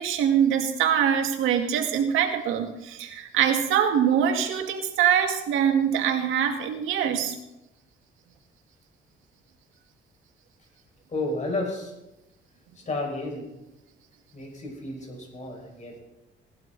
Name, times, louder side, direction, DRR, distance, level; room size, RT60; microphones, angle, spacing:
voice 1, 0.0-7.4, right 8 dB, 85° right, 4 dB, 2.1 m, -23 dB
voice 2, 11.1-11.9 12.7-13.5 14.3-16.0, left 2 dB, 35° left, 1 dB, 5.6 m, -32 dB
18.0 x 12.0 x 4.1 m, 0.95 s
cardioid pair, 90°, 20 cm